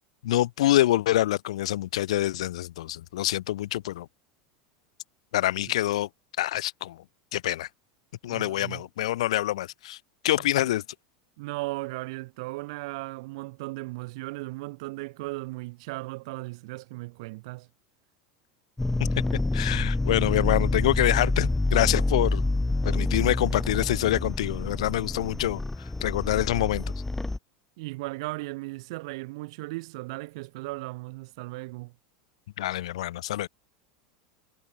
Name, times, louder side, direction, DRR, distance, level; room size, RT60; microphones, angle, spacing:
voice 1, 0.2-4.1 5.3-6.1 6.4-7.0 7.3-7.7 8.2-10.0 10.2-10.8 19.5-22.5 22.8-26.8 32.6-33.5, left 14 dB, 85° left, 3.4 m, -26 dB
voice 2, 8.3-8.8 11.4-17.7 27.8-31.9, right 23 dB, 70° right, 5.0 m, -36 dB
sound 1, 18.8-27.4, left 2 dB, 5° left, 2.1 m, -27 dB
supercardioid pair, 130°, 3 cm